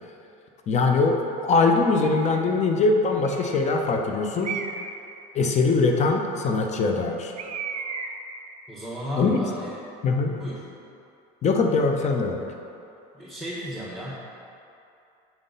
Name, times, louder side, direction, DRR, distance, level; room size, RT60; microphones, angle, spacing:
voice 1, 0.7-4.6 5.3-7.3 9.1-9.4 10.0-10.4 11.4-12.5, left 3 dB, 35° left, 3 dB, 0.7 m, -22 dB
Bird, 2.0-2.5 3.2-3.8 4.4-5.0 7.4-8.4, right 5 dB, 40° right, 0.5 m, -35 dB
voice 2, 8.7-9.8 10.4-10.6 13.1-14.1, equal, 5° left, -9 dB, 1.2 m, -34 dB
7.2 x 3.7 x 4.0 m, 2.7 s
supercardioid pair, 95°, 20 cm